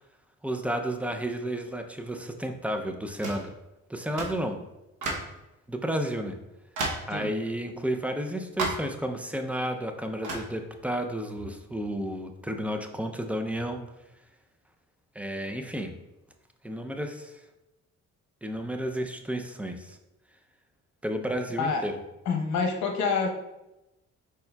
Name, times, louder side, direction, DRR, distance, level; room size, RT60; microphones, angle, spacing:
voice 1, 0.4-3.5 3.9-4.6 5.7-6.3 7.1-13.8 15.2-15.9 16.6-17.4 18.4-20.0 21.0-21.9, right 1 dB, 5° right, 5 dB, 0.4 m, -32 dB
sound 1, 3.2-3.5 4.2-4.4 5.0-5.4 6.0-6.1 6.8-7.1 8.6-8.9 10.2-10.5, right 2 dB, 80° right, 0.9 m, -32 dB
voice 2, 22.3-23.3, left 5 dB, 70° left, 2 dB, 0.8 m, -27 dB
4.7 x 4.4 x 2.2 m, 0.95 s
cardioid pair, 90°, 30 cm